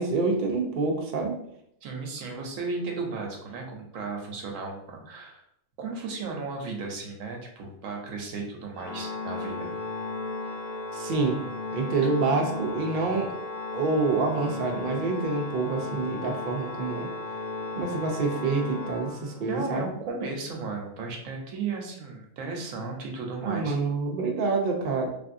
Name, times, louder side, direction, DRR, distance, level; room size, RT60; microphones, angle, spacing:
voice 1, 0.0-1.3 10.9-11.4 11.7-13.3 13.7-17.1 17.8-19.9 23.4-25.1, right 3 dB, 55° right, 1 dB, 0.6 m, -27 dB
voice 2, 1.8-5.4 5.8-9.7 12.0-12.1 19.4-23.8, right 4 dB, 90° right, 1 dB, 1.1 m, -35 dB
Organ, 8.7-19.6, left 3 dB, 75° left, 0.9 m, -35 dB
3.3 x 2.5 x 2.5 m, 0.74 s
omnidirectional pair, 1.3 m